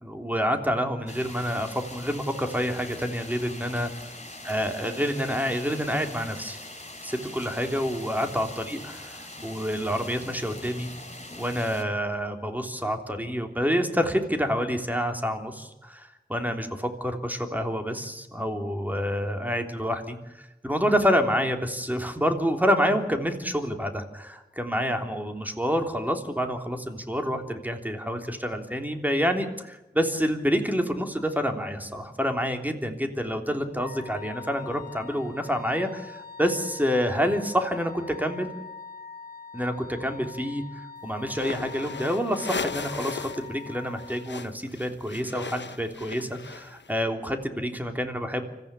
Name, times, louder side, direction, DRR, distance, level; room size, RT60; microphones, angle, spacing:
voice 1, 0.0-3.9 4.4-6.6 7.0-9.1 9.4-10.9 11.4-38.5 39.5-48.4, equal, 10° right, 5 dB, 3.3 m, -28 dB
sound 1, 1.1-11.8, left 1 dB, 40° left, 6.5 m, -42 dB
Wind instrument woodwind instrument, 33.7-44.5, left 5 dB, 15° left, 6.7 m, -43 dB
sound 2, 41.3-43.5 43.7-46.9, left 5 dB, 85° left, 0.9 m, -37 dB
25.5 x 15.0 x 9.9 m, 0.98 s
wide cardioid pair, 40°, 18 cm